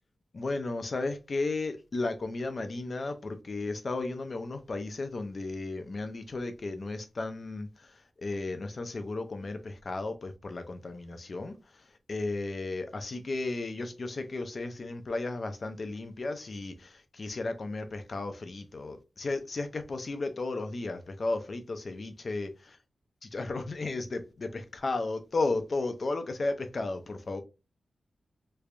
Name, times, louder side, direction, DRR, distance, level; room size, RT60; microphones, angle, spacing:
voice 1, 0.3-7.9 8.2-11.6 12.1-22.5 23.3-27.4, left 3 dB, 40° left, 0.5 m, -34 dB
3.3 x 3.2 x 2.4 m
wide cardioid pair, 155°, 0 cm